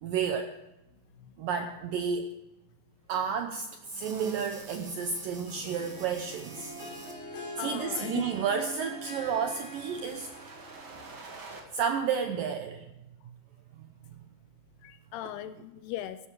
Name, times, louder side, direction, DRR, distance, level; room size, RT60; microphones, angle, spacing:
voice 1, 0.0-0.6 1.4-2.3 3.1-6.7 7.4-10.3 11.7-12.9, right 6 dB, 75° right, 6 dB, 2.0 m, -31 dB
sound 1, 3.8-7.1 8.3-11.6, right 3 dB, 40° right, 2.0 m, -48 dB
Harp, 5.5-11.2, right 1 dB, 65° left, 5.0 m, -44 dB
voice 2, 7.6-8.3 14.8-16.2, left 14 dB, 80° left, 12 dB, 2.4 m, -38 dB
15.0 x 11.5 x 4.6 m, 0.99 s
omnidirectional pair, 5.0 m